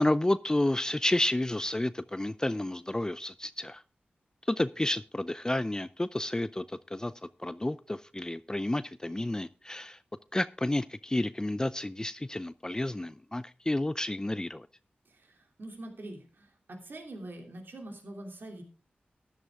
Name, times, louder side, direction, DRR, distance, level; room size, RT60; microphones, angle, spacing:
voice 1, 0.0-3.8 4.5-7.1 7.4-10.0 10.3-14.7, left 1 dB, 20° left, 15 dB, 0.4 m, -30 dB
voice 2, 15.1-18.6, right 1 dB, 70° right, 3 dB, 2.9 m, -44 dB
12.5 x 11.0 x 3.6 m, 0.36 s
cardioid pair, 45°, 4 cm